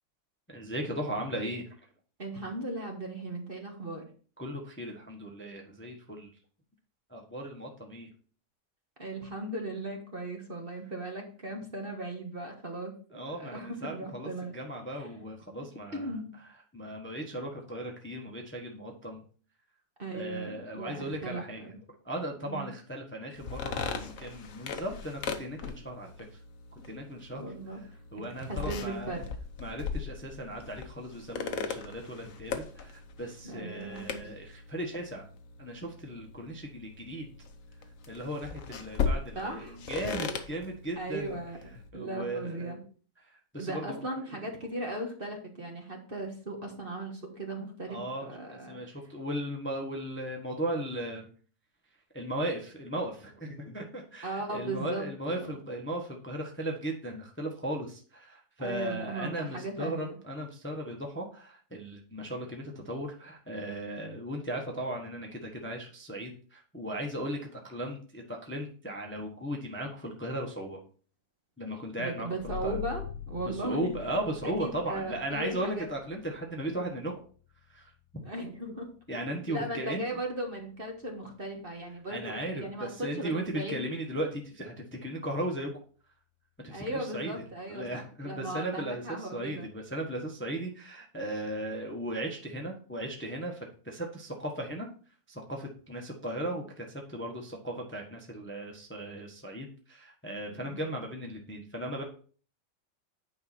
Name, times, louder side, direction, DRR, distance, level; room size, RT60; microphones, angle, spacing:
voice 1, 0.5-1.6 4.4-6.3 7.1-8.1 13.1-16.1 16.7-19.2 20.1-21.6 22.0-26.1 26.9-27.4 28.1-29.2 29.6-35.2 35.6-37.3 38.1-41.3 41.9-42.8 43.5-44.0 47.9-51.3 52.1-70.8 71.6-72.8 73.5-77.1 77.7-77.9 79.1-80.0 82.1-85.7 86.6-87.3 87.7-94.9 95.3-102.0, right 1 dB, 10° left, 1 dB, 1.1 m, -37 dB
voice 2, 2.2-4.0 9.0-14.5 14.9-15.1 15.9-16.3 20.0-21.8 22.4-22.7 27.3-27.8 28.4-29.2 33.4-34.3 39.3-39.8 41.0-41.6 41.9-42.8 43.6-48.8 54.2-55.6 58.6-60.2 72.0-74.0 74.4-75.9 78.2-78.9 79.1-83.9 86.7-89.7 96.4-96.6 100.5-100.8, right 2 dB, 35° right, 1 dB, 1.6 m, -37 dB
sound 1, 23.4-41.9, left 5 dB, 55° left, 1.1 m, -39 dB
sound 2, 72.4-83.6, left 8 dB, 85° left, 1.9 m, -47 dB
9.3 x 5.3 x 4.3 m, 0.41 s
omnidirectional pair, 1.9 m